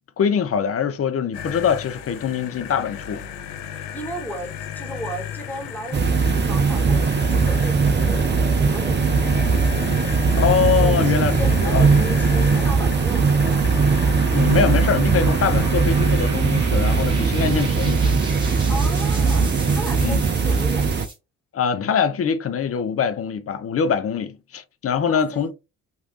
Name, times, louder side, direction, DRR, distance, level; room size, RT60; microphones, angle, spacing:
voice 1, 0.2-3.2 10.4-11.9 14.3-18.1 20.0-20.2 21.5-25.5, left 7 dB, 40° left, 0.7 m, -23 dB
sound 1, 1.3-16.3, left 9 dB, 80° left, 0.6 m, -35 dB
voice 2, 3.9-9.4 10.7-13.6 18.7-21.1 25.1-25.5, right 1 dB, 5° left, 1.7 m, -35 dB
sound 2, 5.9-21.1, right 4 dB, 30° right, 0.6 m, -19 dB
sound 3, 6.6-21.2, right 1 dB, 15° right, 1.9 m, -38 dB
3.1 x 2.6 x 2.9 m
hypercardioid pair, 50°, 36 cm